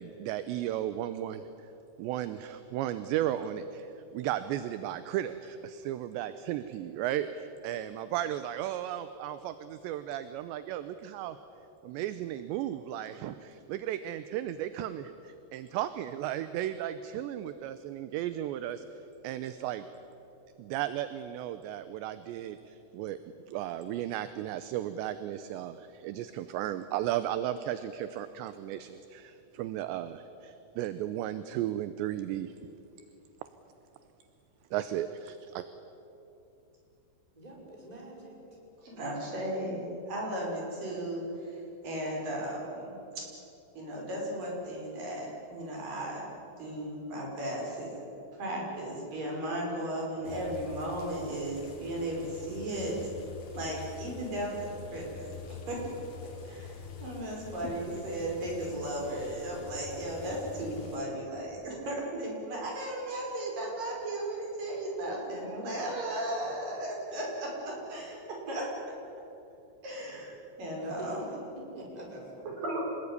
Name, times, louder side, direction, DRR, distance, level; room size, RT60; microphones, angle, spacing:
voice 1, 0.0-1.5 2.0-11.4 11.8-18.8 19.2-19.9 20.6-23.2 23.5-32.5 34.7-35.7, right 12 dB, 80° right, 11 dB, 2.8 m, -35 dB
voice 2, 37.4-38.4 70.8-72.6, equal, 10° right, -2 dB, 5.4 m, -45 dB
voice 3, 38.8-43.0 43.8-46.2 46.6-48.0 48.4-53.0 53.5-55.3 55.7-55.8 56.4-68.2 68.5-68.6 69.8-71.3 72.5-72.9, right 1 dB, 45° right, -2 dB, 6.8 m, -35 dB
sound 1, 50.2-61.0, left 7 dB, 50° left, 4.2 m, -45 dB
27.0 x 20.5 x 9.8 m, 2.9 s
omnidirectional pair, 5.5 m